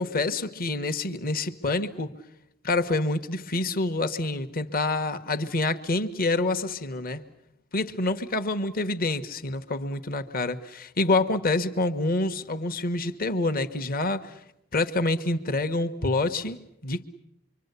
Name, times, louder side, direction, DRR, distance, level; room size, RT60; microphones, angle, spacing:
voice 1, 0.0-2.1 2.6-7.2 7.7-14.3 14.7-17.0, left 2 dB, 40° left, 8 dB, 1.3 m, -27 dB
26.0 x 24.5 x 8.2 m, 0.78 s
head